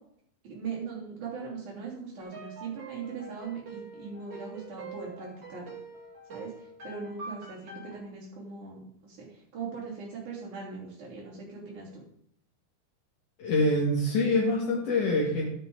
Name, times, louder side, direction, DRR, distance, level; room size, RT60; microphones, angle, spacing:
voice 1, 0.4-5.7 6.3-6.5 6.8-12.0, right 5 dB, 65° right, -9 dB, 4.8 m, -40 dB
sound 1, 2.2-8.0, right 4 dB, 45° right, 3.7 m, -45 dB
voice 2, 13.4-15.5, left 1 dB, 70° left, -4 dB, 3.3 m, -25 dB
14.5 x 9.5 x 3.9 m, 0.71 s
omnidirectional pair, 3.7 m